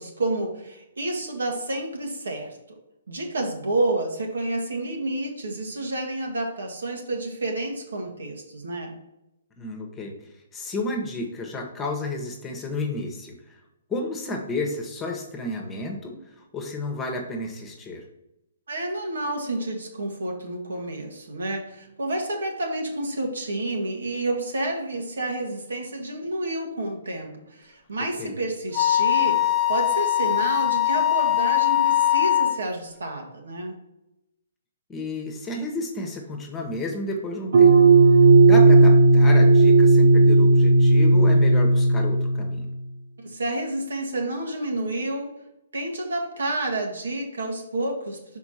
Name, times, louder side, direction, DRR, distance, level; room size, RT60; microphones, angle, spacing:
voice 1, 0.0-2.6 3.1-8.9 18.7-33.8 43.2-45.4 45.7-48.4, right 2 dB, 75° right, 1 dB, 1.6 m, -29 dB
voice 2, 9.6-10.1 10.5-13.5 13.9-18.0 28.2-28.3 34.9-37.7 38.4-42.7, left 2 dB, 15° left, 2 dB, 1.2 m, -31 dB
Wind instrument woodwind instrument, 28.7-32.6, left 13 dB, 35° left, 0.6 m, -21 dB
sound 1, 37.5-42.7, right 2 dB, 55° right, 0.7 m, -15 dB
6.0 x 4.4 x 4.3 m, 0.90 s
figure-of-eight pair, 125°, 0 cm